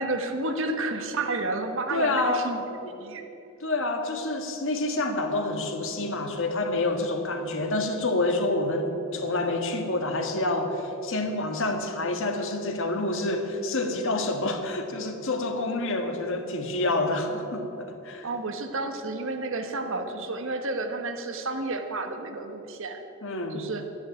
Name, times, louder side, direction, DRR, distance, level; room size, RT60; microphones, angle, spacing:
voice 1, 0.0-3.2 18.2-23.0 23.5-23.9, right 2 dB, 65° right, 6 dB, 1.4 m, -31 dB
voice 2, 1.9-2.5 3.6-18.3 23.2-23.6, left 2 dB, 65° left, 5 dB, 1.7 m, -28 dB
12.0 x 10.5 x 9.1 m, 2.9 s
head